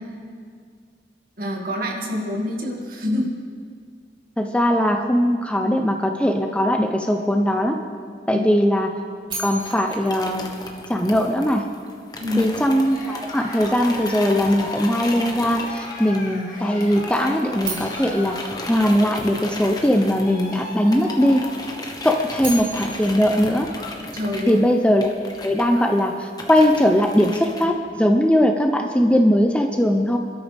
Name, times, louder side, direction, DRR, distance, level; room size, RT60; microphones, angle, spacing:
voice 1, 1.4-3.3 8.3-8.5 12.2-12.5 24.1-24.6, left 1 dB, 55° right, -1 dB, 2.3 m, -26 dB
voice 2, 4.4-7.8 8.3-8.9 9.4-10.4 10.9-11.6 12.4-18.4 18.7-21.4 22.0-23.7 24.5-25.1 25.4-30.2, equal, 5° left, 4 dB, 0.7 m, -20 dB
sound 1, 9.3-11.4 17.6-19.8 22.1-24.5, right 3 dB, 30° right, 3.5 m, -36 dB
sound 2, 9.6-16.5 16.8-27.6, left 2 dB, 25° left, 1.4 m, -36 dB
Cheering, 12.8-24.1 24.4-24.8 25.2-25.3 25.5-26.3, left 2 dB, 50° left, 2.5 m, -38 dB
27.0 x 12.5 x 3.6 m, 2.1 s
head